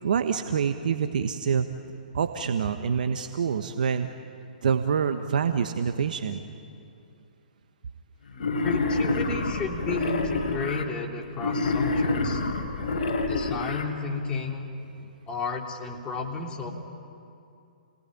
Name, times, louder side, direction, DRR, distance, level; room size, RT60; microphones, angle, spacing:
voice 1, 0.0-1.7 2.1-4.1 4.6-6.4, right 7 dB, 60° right, 8 dB, 1.3 m, -26 dB
Wild animals, 8.4-10.8 11.4-13.8, left 3 dB, 60° left, 4.0 m, -27 dB
voice 2, 8.6-12.4 13.2-14.7 15.3-16.7, left 4 dB, 20° left, 0 dB, 3.4 m, -33 dB
29.5 x 19.5 x 9.9 m, 2.6 s
figure-of-eight pair, 125°, 5 cm